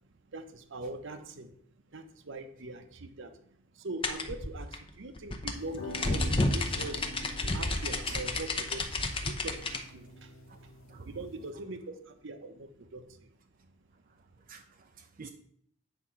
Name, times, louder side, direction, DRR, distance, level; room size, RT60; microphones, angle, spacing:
voice 1, 0.3-1.5 1.9-3.3 3.7-7.1 7.5-8.8 9.2-10.3 11.0-13.3, right 2 dB, 65° right, 8 dB, 0.9 m, -42 dB
sound 1, 4.0-9.8, left 2 dB, 25° left, 0.7 m, -31 dB
sound 2, 5.5-11.5, left 1 dB, 80° left, 0.9 m, -46 dB
voice 2, 10.5-11.2 14.5-15.3, right 5 dB, 45° right, 5 dB, 0.5 m, -49 dB
8.1 x 3.7 x 5.8 m, 0.66 s
head